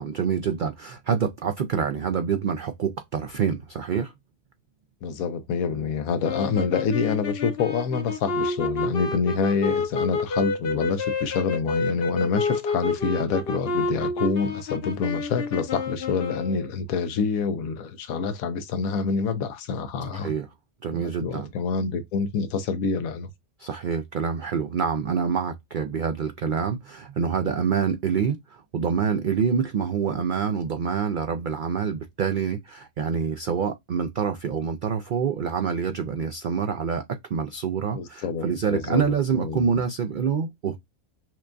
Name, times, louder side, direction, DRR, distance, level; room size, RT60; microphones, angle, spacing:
voice 1, 0.0-4.1 20.1-20.5 20.8-21.5 23.6-37.0 37.3-40.8, right 6 dB, 85° right, 0.4 m, -26 dB
voice 2, 5.0-20.3 20.9-23.3 37.9-39.6, left 5 dB, 80° left, 1.1 m, -27 dB
sound 1, 6.2-16.7, left 3 dB, 50° left, 1.0 m, -29 dB
5.9 x 2.2 x 2.5 m
omnidirectional pair, 1.5 m